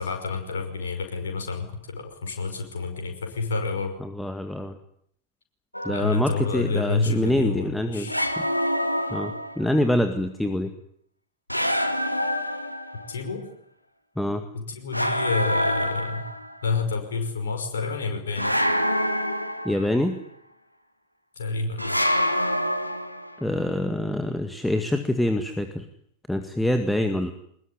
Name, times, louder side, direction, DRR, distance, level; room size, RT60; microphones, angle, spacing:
voice 1, 0.0-3.9 5.9-8.2 13.1-13.5 14.5-16.2 16.6-18.5 21.4-22.0, left 3 dB, 65° left, 4 dB, 5.6 m, -29 dB
voice 2, 4.0-4.7 5.8-8.5 9.1-10.7 14.2-14.4 19.6-20.2 23.4-25.9 26.3-27.3, left 1 dB, 5° left, 7 dB, 2.0 m, -25 dB
sound 1, 5.7-6.3 8.1-9.7 11.5-13.2 14.9-16.6 18.4-20.1 21.8-23.4, equal, 90° left, 1.8 m, -26 dB
23.5 x 21.5 x 9.8 m, 0.68 s
figure-of-eight pair, 90°, 0 cm